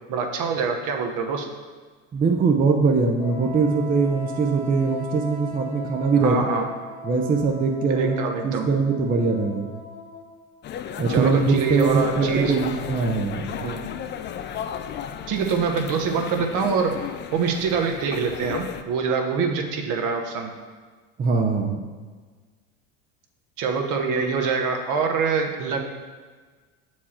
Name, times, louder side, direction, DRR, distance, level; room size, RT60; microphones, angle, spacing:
voice 1, 0.1-1.5 6.2-6.7 7.9-8.7 11.1-12.6 13.6-13.8 15.3-16.9 17.3-20.5 23.6-25.8, right 5 dB, 55° right, 4 dB, 1.1 m, -25 dB
voice 2, 2.1-6.7 7.0-8.2 8.4-9.7 11.0-13.5 21.2-21.8, right 4 dB, 20° right, 3 dB, 0.6 m, -22 dB
Wind instrument woodwind instrument, 3.2-10.5, equal, 80° left, 1.4 m, -39 dB
sound 1, 10.6-18.8, left 8 dB, 30° left, 0.4 m, -34 dB
7.2 x 4.7 x 4.3 m, 1.4 s
supercardioid pair, 90°, 38 cm